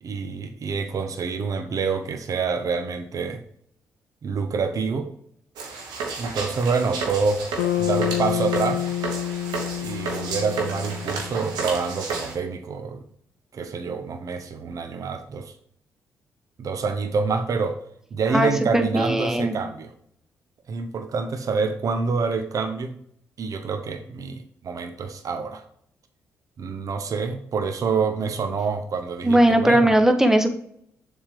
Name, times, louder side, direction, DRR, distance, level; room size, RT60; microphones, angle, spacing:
voice 1, 0.0-3.4 4.2-5.1 6.2-7.5 7.8-8.9 9.8-13.0 13.5-15.5 16.6-17.8 18.1-19.9 20.7-22.9 23.4-25.6 26.6-29.9, right 5 dB, 50° right, 7 dB, 0.7 m, -27 dB
sound 1, 5.6-12.3, right 4 dB, 70° right, 1.4 m, -32 dB
Bass guitar, 7.6-11.9, left 12 dB, 75° left, 0.5 m, -28 dB
voice 2, 18.3-19.6 29.2-30.5, right 1 dB, 5° right, 6 dB, 1.2 m, -19 dB
7.1 x 3.6 x 5.0 m, 0.68 s
hypercardioid pair, 40°, 7 cm